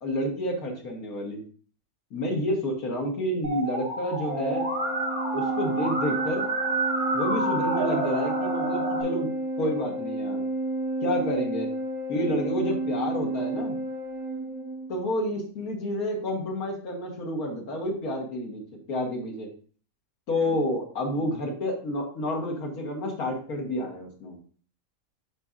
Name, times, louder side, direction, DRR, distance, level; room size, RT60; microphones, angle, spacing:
voice 1, 0.0-1.4 2.1-4.7 5.3-6.5 7.1-9.3 9.6-10.4 11.0-11.7 12.1-13.7 14.9-18.6 18.9-19.5 20.3-24.4, left 1 dB, 85° left, 0 dB, 1.9 m, -29 dB
Musical instrument, 3.4-9.0, right 2 dB, 55° right, 2.9 m, -29 dB
Organ, 4.2-15.0, right 1 dB, 80° right, 1.6 m, -31 dB
11.5 x 4.2 x 2.5 m, 0.43 s
omnidirectional pair, 1.5 m